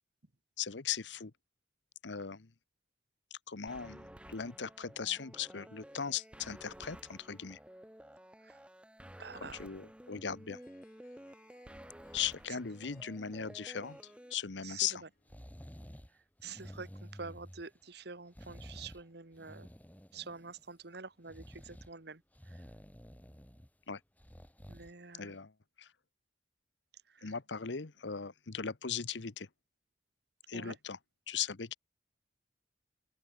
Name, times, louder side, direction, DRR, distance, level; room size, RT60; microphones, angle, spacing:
voice 1, 0.6-1.3 2.0-2.5 3.5-7.6 9.4-10.6 12.1-15.0 23.9-24.0 25.2-25.5 25.8-25.9 27.2-29.5 30.5-31.0 31.3-31.8, left 7 dB, 80° left, 1.0 m, -38 dB
sound 1, 3.7-14.3, equal, 5° right, 3.1 m, -53 dB
voice 2, 9.2-9.6 14.6-15.1 16.4-19.7 20.1-22.7 24.7-25.4 27.1-27.4 30.5-30.8, right 4 dB, 65° right, 1.7 m, -48 dB
Harp, 10.3-16.0, left 5 dB, 55° left, 6.6 m, -72 dB
sound 2, 15.3-16.1 16.4-17.8 18.3-19.1 19.3-20.7 21.2-21.9 22.3-23.7 24.2-24.9 25.4-25.5, equal, 10° left, 2.5 m, -51 dB
open air
head